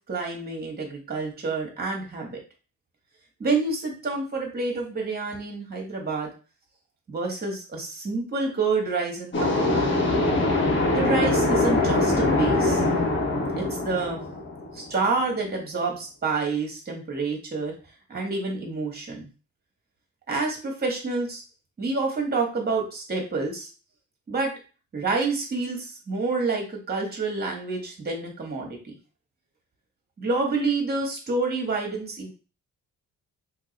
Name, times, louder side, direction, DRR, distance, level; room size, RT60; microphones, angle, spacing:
voice 1, 0.1-2.4 3.4-6.3 7.1-10.1 10.9-12.9 13.6-14.2 14.7-17.7 18.1-19.3 20.3-21.4 21.8-23.7 24.3-24.5 24.9-28.8 30.2-32.3, right 3 dB, 30° right, 1 dB, 1.5 m, -28 dB
sound 1, 9.3-15.0, left 2 dB, 40° left, 1.1 m, -23 dB
2.9 x 2.9 x 4.0 m, 0.34 s
cardioid pair, 115°, 30 cm